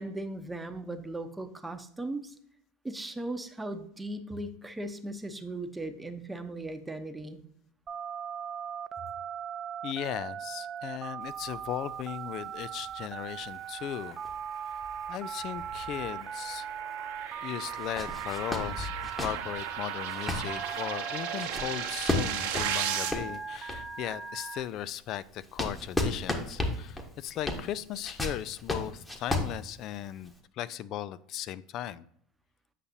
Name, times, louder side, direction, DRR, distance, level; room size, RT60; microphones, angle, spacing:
voice 1, 0.0-2.3 2.8-7.4, right 2 dB, 10° right, 7 dB, 0.8 m, -38 dB
Telephone, 7.9-24.6, right 7 dB, 35° right, 0.4 m, -39 dB
voice 2, 9.8-14.2 15.1-16.7 17.4-18.9 19.2-32.1, left 12 dB, 50° left, 17 dB, 0.3 m, -37 dB
sound 1, 11.2-16.6 16.9-17.0 17.6-24.0 24.5-30.3, left 2 dB, 15° left, 1.2 m, -36 dB
sound 2, 14.2-23.1, right 10 dB, 70° right, 0.9 m, -37 dB
8.2 x 5.7 x 2.7 m, 0.67 s
hypercardioid pair, 80°, 0 cm